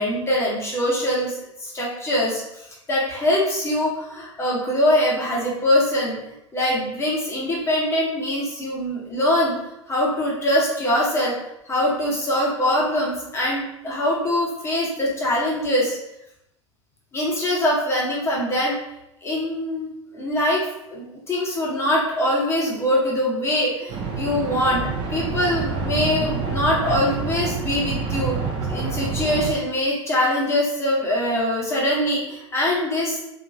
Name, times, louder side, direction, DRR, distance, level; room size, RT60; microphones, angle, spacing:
voice 1, 0.0-1.4 1.6-2.4 2.9-6.2 6.5-9.5 9.9-11.3 11.7-16.0 17.1-18.7 19.2-19.9 20.1-20.6 20.9-28.4 28.7-33.2, left 1 dB, 15° left, -5 dB, 1.0 m, -23 dB
sound 1, 23.9-29.5, right 4 dB, 30° right, 0.6 m, -27 dB
2.8 x 2.4 x 2.6 m, 0.84 s
figure-of-eight pair, 90°, 16 cm